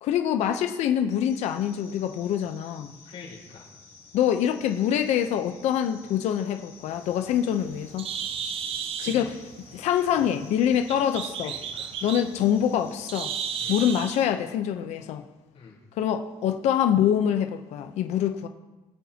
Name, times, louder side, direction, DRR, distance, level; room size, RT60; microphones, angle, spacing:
voice 1, 0.0-3.0 4.1-8.1 9.0-9.3 9.7-11.5 12.0-13.3 13.7-15.2 16.0-18.5, left 9 dB, 80° left, 7 dB, 0.7 m, -25 dB
sound 1, 1.3-14.2, left 4 dB, 25° left, 2.8 m, -52 dB
voice 2, 3.0-3.7 8.5-9.3 10.1-10.3 11.4-11.9 13.6-13.8 15.5-15.8, left 5 dB, 60° left, -5 dB, 4.0 m, -44 dB
Bird, 6.9-14.2, right 8 dB, 55° right, 0.7 m, -35 dB
21.0 x 8.5 x 2.9 m, 1.1 s
cardioid pair, 155°, 11 cm